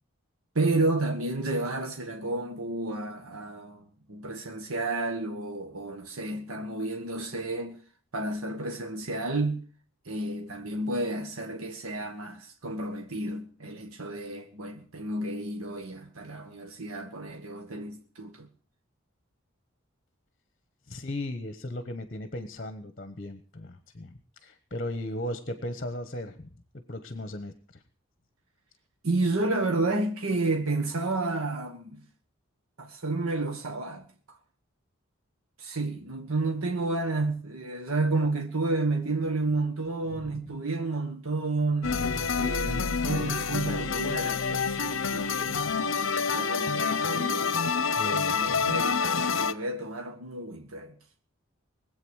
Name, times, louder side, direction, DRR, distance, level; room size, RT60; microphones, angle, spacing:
voice 1, 0.5-7.8 8.1-9.6 10.0-18.5 29.0-32.0 32.8-34.0 35.6-45.6 46.3-47.6 48.1-49.0 49.3-50.9, right 2 dB, 85° right, 1.5 m, -31 dB
voice 2, 20.9-26.5 26.9-27.8 40.1-40.5 47.9-48.7, left 1 dB, 40° left, 1.2 m, -37 dB
sound 1, 41.8-49.5, left 5 dB, 65° left, 0.8 m, -27 dB
20.5 x 8.1 x 6.4 m
head